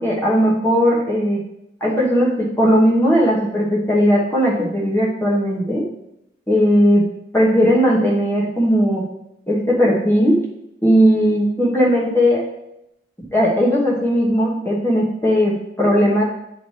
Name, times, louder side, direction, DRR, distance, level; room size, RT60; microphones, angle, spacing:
voice 1, 0.0-1.4 1.8-5.9 6.5-7.1 7.3-9.0 9.5-10.4 10.8-12.4 13.3-16.2, equal, 10° left, -4 dB, 1.2 m, -17 dB
9.2 x 3.2 x 4.2 m, 0.83 s
head